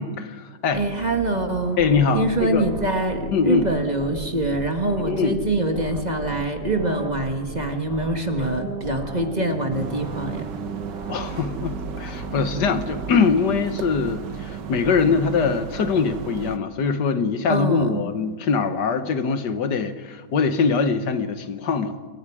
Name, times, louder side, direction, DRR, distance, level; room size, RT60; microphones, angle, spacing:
voice 1, 0.0-0.8 1.8-2.7 3.3-3.7 5.1-5.4 11.1-21.9, left 5 dB, 80° left, 1.7 m, -23 dB
voice 2, 0.7-1.8 2.1-10.5 17.5-18.0, right 2 dB, 25° right, 1.7 m, -24 dB
sound 1, 0.7-13.1, right 2 dB, 55° right, 2.4 m, -36 dB
sound 2, 9.7-16.6, right 8 dB, 85° right, 1.7 m, -34 dB
27.5 x 22.5 x 4.9 m
omnidirectional pair, 1.8 m